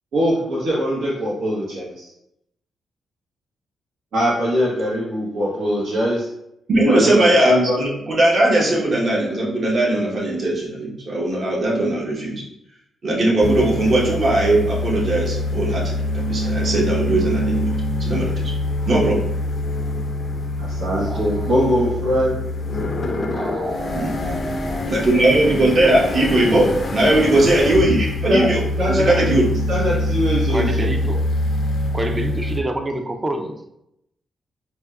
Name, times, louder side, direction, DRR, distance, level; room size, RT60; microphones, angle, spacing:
voice 1, 0.1-2.1 4.1-6.3 6.9-7.8 20.6-22.3 28.3-28.5 28.8-29.3 29.7-30.9, equal, 85° right, -7 dB, 0.9 m, -21 dB
voice 2, 6.7-12.4 13.0-17.7 18.0-18.5 18.9-19.3 23.9-24.1 24.9-28.6 28.9-29.5, right 1 dB, 50° right, -3 dB, 1.0 m, -19 dB
sound 1, 13.4-32.6, left 1 dB, 45° left, 0.4 m, -24 dB
voice 3, 21.1-21.5 23.3-24.9 29.1-29.3 30.5-31.3 31.9-33.5, right 1 dB, 25° right, 5 dB, 0.4 m, -28 dB
4.4 x 2.2 x 2.4 m, 0.81 s
cardioid pair, 80°, 0 cm